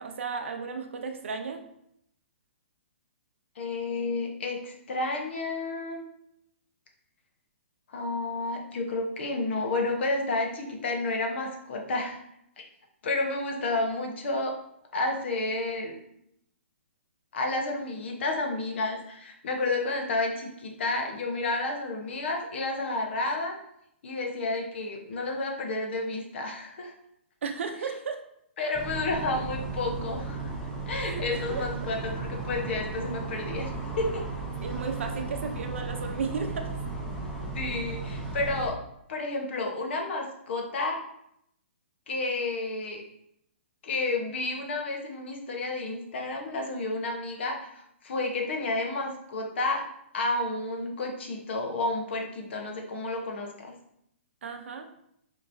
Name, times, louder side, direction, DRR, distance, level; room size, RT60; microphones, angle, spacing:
voice 1, 0.0-1.6 27.4-28.2 28.6-28.7 31.0-31.2 31.5-31.6 34.6-36.7 54.4-54.9, right 5 dB, 75° right, 5 dB, 0.7 m, -34 dB
voice 2, 3.6-6.0 7.9-12.2 12.6-12.7 13.0-14.5 14.9-15.9 17.3-23.5 24.0-26.9 28.6-30.5 30.9-34.2 37.5-38.8 39.1-41.0 42.1-43.0 43.8-49.9 50.1-53.7, left 2 dB, 60° left, 2 dB, 1.1 m, -31 dB
sound 1, 28.7-38.7, right 3 dB, 5° left, 0.7 m, -35 dB
5.8 x 3.0 x 2.7 m, 0.75 s
hypercardioid pair, 150°, 7 cm